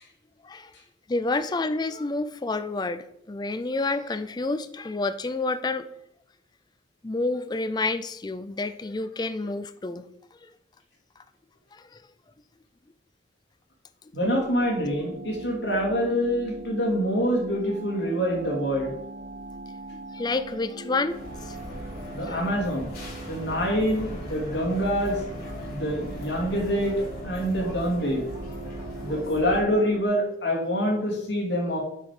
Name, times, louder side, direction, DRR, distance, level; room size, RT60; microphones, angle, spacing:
voice 1, 1.1-5.9 7.0-10.1 10.4-10.5 11.7-12.0 19.9-21.6 22.2-22.4, left 3 dB, 20° left, 11 dB, 0.4 m, -29 dB
voice 2, 14.1-18.9 22.1-22.9 23.3-25.2 25.7-26.9 27.2-28.2 29.0-31.8, equal, 70° left, -2 dB, 2.7 m, -26 dB
sound 1, 14.2-30.0, right 2 dB, 50° right, 0.8 m, -41 dB
sound 2, 21.1-29.6, equal, 50° left, 3.8 m, -39 dB
9.6 x 5.2 x 5.0 m, 0.79 s
head